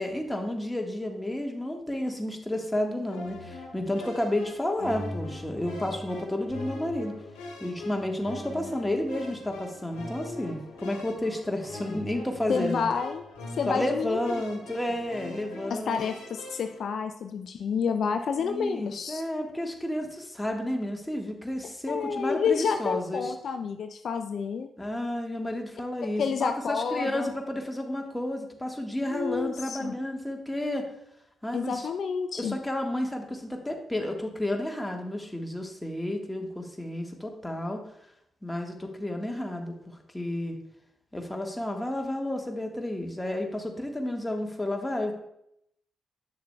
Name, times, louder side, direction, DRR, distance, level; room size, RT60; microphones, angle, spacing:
voice 1, 0.0-7.1 7.6-12.9 13.7-16.0 18.4-23.3 24.8-30.9 31.4-31.9 32.4-37.8 38.4-39.7 40.1-40.6 41.1-45.1, left 1 dB, 10° left, 2 dB, 1.4 m, -31 dB
sound 1, 3.1-16.8, left 2 dB, 80° left, 1.1 m, -41 dB
voice 2, 12.5-14.3 15.7-19.2 21.9-24.7 26.2-27.3 29.0-29.9 31.5-32.6, left 6 dB, 60° left, 7 dB, 0.3 m, -29 dB
9.3 x 6.5 x 2.2 m, 0.76 s
hypercardioid pair, 40°, 0 cm